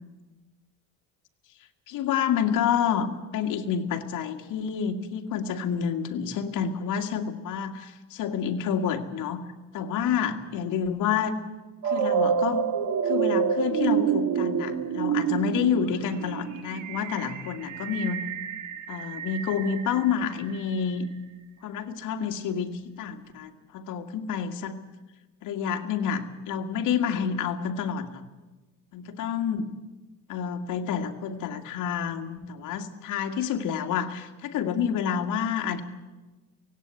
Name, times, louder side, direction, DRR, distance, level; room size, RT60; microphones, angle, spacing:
voice 1, 1.9-9.4 9.7-11.4 11.8-12.6 13.0-18.3 18.9-21.1 21.6-24.8 25.4-28.2 28.9-29.7 30.3-35.8, left 7 dB, 60° left, 5 dB, 2.0 m, -29 dB
sound 1, 11.8-20.8, right 7 dB, 55° right, 1.9 m, -28 dB
17.5 x 17.0 x 9.5 m, 1.2 s
cardioid pair, 140°, 35 cm